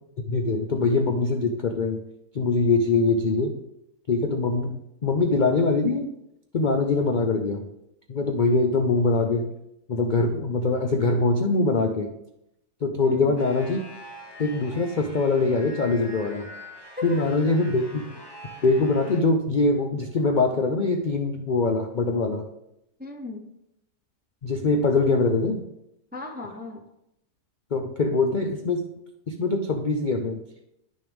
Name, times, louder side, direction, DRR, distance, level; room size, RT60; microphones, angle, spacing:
voice 1, 0.3-2.0 2.3-3.6 4.1-6.1 6.5-7.7 8.1-9.5 9.9-12.1 12.8-13.8 14.4-16.5 17.0-18.0 18.6-22.5 24.4-25.6 27.7-28.9 29.3-30.4, left 3 dB, 70° left, 5 dB, 0.4 m, -23 dB
voice 2, 13.0-13.4 17.0-17.3 23.0-23.5 26.1-26.9, left 2 dB, 10° right, 3 dB, 0.4 m, -36 dB
sound 1, 13.4-19.2, equal, 20° left, 0.9 m, -44 dB
11.0 x 6.4 x 3.5 m, 0.82 s
omnidirectional pair, 1.7 m